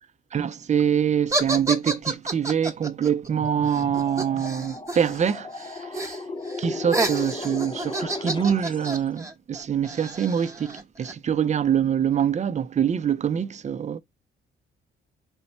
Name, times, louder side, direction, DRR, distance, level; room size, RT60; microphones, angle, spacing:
voice 1, 0.3-6.2 6.6-14.0, right 8 dB, 35° right, 0.5 m, -25 dB
sound 1, 1.3-5.3 5.6-6.2 6.5-11.1, right 2 dB, 15° right, 1.0 m, -30 dB
sound 2, 3.3-9.1, left 3 dB, 25° left, 0.5 m, -36 dB
4.3 x 2.9 x 4.1 m
cardioid pair, 90°, 20 cm